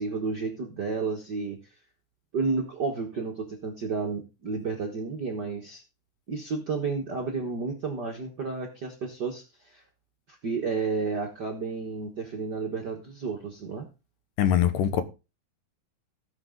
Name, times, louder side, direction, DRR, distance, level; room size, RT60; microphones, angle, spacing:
voice 1, 0.0-1.6 2.3-5.8 6.3-9.8 10.3-13.9, right 4 dB, 55° right, 1.1 m, -31 dB
voice 2, 14.4-15.0, left 10 dB, 75° left, 2.6 m, -22 dB
18.0 x 6.1 x 3.8 m
omnidirectional pair, 4.0 m